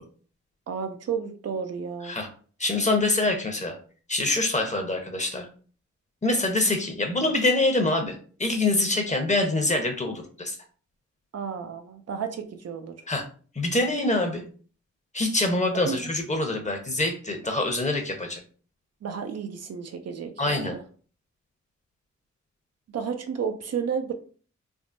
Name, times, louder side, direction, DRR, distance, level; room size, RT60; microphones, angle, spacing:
voice 1, 0.7-2.2 10.1-10.2 11.3-13.0 15.8-16.0 19.0-20.8 22.9-24.1, right 6 dB, 60° right, 6 dB, 0.5 m, -32 dB
voice 2, 2.6-3.8 4.1-5.5 6.2-10.6 13.1-13.2 13.5-14.4 15.1-18.4 20.4-20.7, left 2 dB, 25° left, 4 dB, 0.9 m, -25 dB
3.5 x 2.0 x 2.5 m, 0.42 s
cardioid pair, 45°, 29 cm